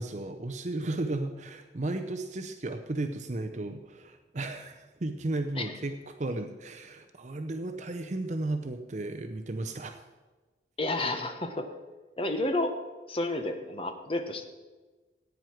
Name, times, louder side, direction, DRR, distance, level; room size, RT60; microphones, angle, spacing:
voice 1, 0.0-10.0, right 2 dB, 40° right, 7 dB, 0.6 m, -34 dB
voice 2, 10.8-11.7 12.2-12.7 13.1-14.4, left 2 dB, 30° left, 6 dB, 1.1 m, -30 dB
15.5 x 9.3 x 4.5 m, 1.3 s
head